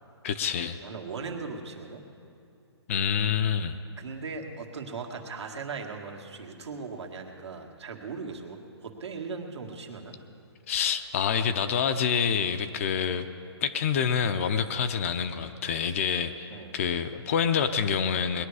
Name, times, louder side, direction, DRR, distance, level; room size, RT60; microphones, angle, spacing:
voice 1, 0.2-0.8 2.9-3.8 10.7-13.3 13.6-18.4, left 7 dB, 30° left, 9 dB, 0.5 m, -27 dB
voice 2, 0.8-2.0 4.0-10.2 16.5-16.7, right 4 dB, 75° right, 1 dB, 1.9 m, -38 dB
20.0 x 11.0 x 4.8 m, 2.5 s
hypercardioid pair, 155°, 14 cm